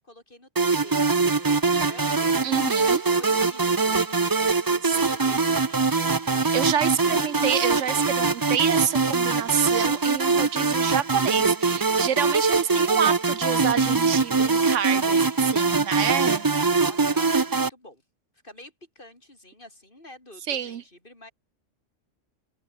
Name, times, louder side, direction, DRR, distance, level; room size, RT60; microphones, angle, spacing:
voice 1, 0.0-2.4 2.8-6.1 15.1-15.4 16.8-18.0 18.4-21.3, left 1 dB, 45° left, 6.2 m, -48 dB
sound 1, 0.6-17.7, right 4 dB, 25° right, 0.5 m, -23 dB
voice 2, 2.4-3.1 4.8-5.0 6.4-15.2 15.5-16.5 20.5-20.8, right 8 dB, 75° right, 1.2 m, -28 dB
omnidirectional pair, 1.3 m